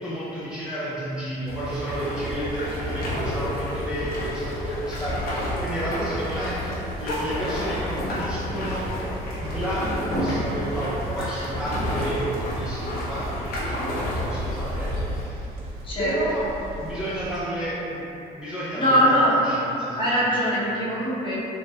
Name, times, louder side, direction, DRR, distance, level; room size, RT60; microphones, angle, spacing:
voice 1, 0.0-8.9 9.4-15.4 16.0-16.4 16.8-18.0 18.3-19.1 19.4-20.0, right 1 dB, 5° right, -11 dB, 0.6 m, -31 dB
sound 1, 1.5-15.2, equal, 65° left, 0.8 m, -30 dB
sound 2, 2.3-17.4, equal, 70° right, 0.5 m, -40 dB
voice 2, 18.7-19.4 19.9-21.4, equal, 30° left, -8 dB, 0.9 m, -21 dB
4.0 x 2.1 x 2.4 m, 3.0 s
cardioid pair, 110°, 17 cm